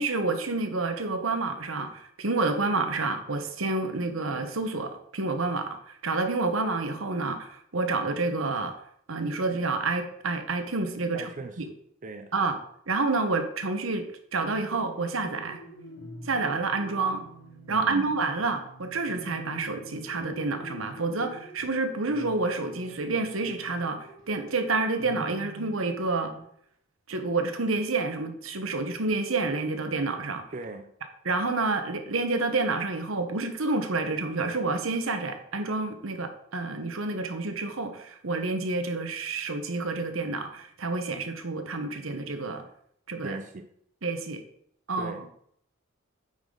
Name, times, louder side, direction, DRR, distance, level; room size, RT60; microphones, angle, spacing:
voice 1, 0.0-8.7 9.1-11.3 11.6-11.7 12.3-12.6 12.9-15.6 16.2-17.3 17.7-26.3 27.1-30.5 31.2-42.7 43.1-43.4 44.0-44.4 44.9-45.1, right 3 dB, 85° right, 7 dB, 1.1 m, -29 dB
voice 2, 11.1-11.6 12.0-12.3 17.7-18.1 30.5-30.9 43.2-43.7 45.0-45.2, right 2 dB, 40° right, 6 dB, 0.5 m, -38 dB
sound 1, 14.4-26.4, right 1 dB, 65° left, 1.7 m, -46 dB
9.2 x 5.0 x 3.8 m, 0.69 s
head